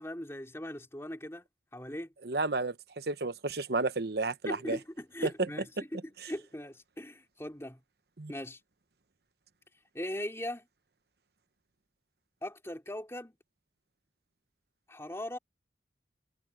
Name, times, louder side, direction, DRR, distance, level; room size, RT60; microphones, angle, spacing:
voice 1, 0.0-1.5 1.7-2.1 4.5-5.7 6.2-7.8 8.3-8.6 9.9-10.7 12.4-13.3 14.9-15.4, left 1 dB, 15° left, 3.5 m, -39 dB
voice 2, 2.2-4.8 8.2-8.3, right 3 dB, 60° right, 1.0 m, -32 dB
head